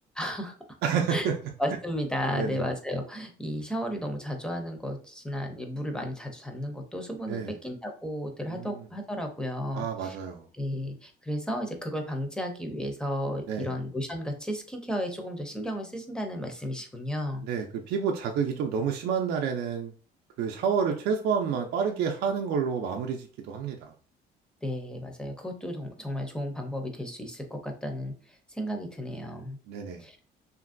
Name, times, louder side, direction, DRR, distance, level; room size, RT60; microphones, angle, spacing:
voice 1, 0.2-0.5 1.1-1.3 1.6-10.2 10.5-17.4 24.6-29.6 30.0-30.2, equal, 5° left, 3 dB, 0.5 m, -33 dB
voice 2, 0.8-1.4 2.3-2.6 7.3-7.5 8.5-8.9 9.7-10.4 13.5-13.7 17.4-19.9 20.4-23.9 29.7-30.0, right 6 dB, 75° right, 3 dB, 0.4 m, -29 dB
2.9 x 2.5 x 2.5 m, 0.41 s
cardioid pair, 110°, 17 cm